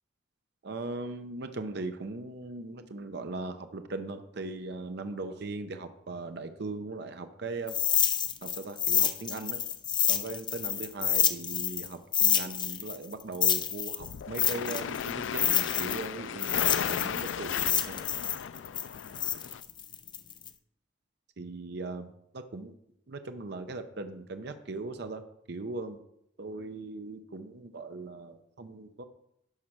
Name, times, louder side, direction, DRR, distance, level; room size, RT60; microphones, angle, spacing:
voice 1, 0.6-7.8 8.4-9.6 10.1-18.1 21.4-22.7 23.1-25.2 25.5-26.0 26.4-29.0, right 3 dB, 60° right, 8 dB, 0.7 m, -39 dB
sound 1, 7.7-11.9 12.1-16.1 16.4-20.5, left 9 dB, 25° left, 0.5 m, -28 dB
sound 2, 14.0-19.6, left 8 dB, 90° left, 0.4 m, -35 dB
11.5 x 4.3 x 6.0 m, 0.76 s
head